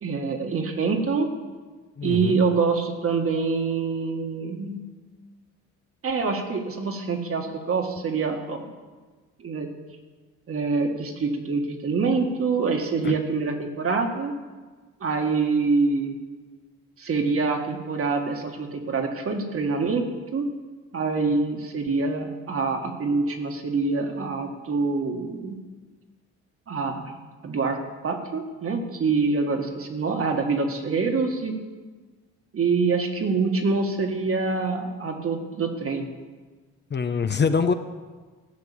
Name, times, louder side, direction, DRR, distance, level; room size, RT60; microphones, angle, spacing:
voice 1, 0.0-1.3 2.0-4.8 6.0-8.7 9.4-9.7 10.5-14.3 15.0-16.2 17.0-20.0 20.3-20.5 20.9-25.6 26.7-27.1 27.4-27.8 28.0-31.6 32.5-36.1, right 4 dB, 50° right, 3 dB, 1.8 m, -25 dB
voice 2, 2.0-2.4 13.0-13.2 36.9-37.7, left 5 dB, 35° left, 9 dB, 0.8 m, -24 dB
14.5 x 6.0 x 8.6 m, 1.4 s
cardioid pair, 90°, 30 cm